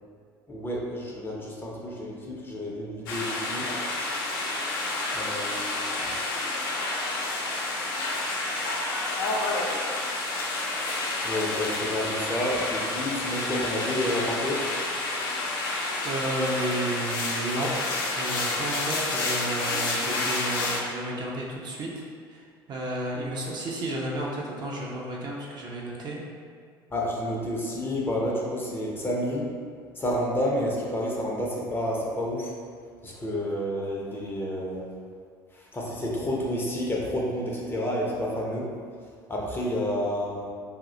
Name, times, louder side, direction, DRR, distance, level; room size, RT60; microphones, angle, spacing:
voice 1, 0.5-3.7 5.1-6.1 11.2-14.7 26.9-29.5 30.0-32.5 33.0-34.9 35.5-38.7 39.3-40.5, left 1 dB, 20° left, -3 dB, 0.5 m, -30 dB
sound 1, 3.1-20.8, left 2 dB, 65° left, 0.5 m, -29 dB
voice 2, 16.0-17.7 18.1-21.9 22.7-26.2, right 1 dB, 35° right, -3 dB, 0.5 m, -32 dB
2.3 x 2.1 x 3.7 m, 2.1 s
figure-of-eight pair, 65°, 12 cm